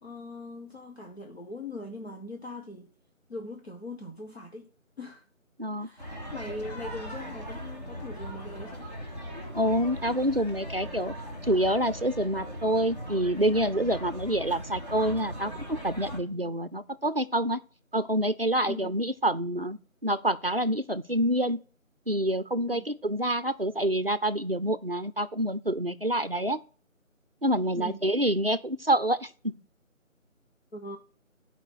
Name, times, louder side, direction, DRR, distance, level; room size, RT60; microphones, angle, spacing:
voice 1, 0.0-2.9 3.3-4.7 5.0-5.3 5.8-8.9 16.3-16.6 18.6-19.0 22.6-22.9 27.7-28.0 30.7-31.0, left 2 dB, 50° left, 1.1 m, -41 dB
voice 2, 5.6-5.9 9.5-11.1 11.4-17.6 17.9-21.6 22.1-26.6 27.4-29.6, right 1 dB, 45° right, 0.5 m, -27 dB
sound 1, 6.0-16.2, equal, 30° left, 2.0 m, -39 dB
10.0 x 4.9 x 6.1 m
figure-of-eight pair, 175°, 41 cm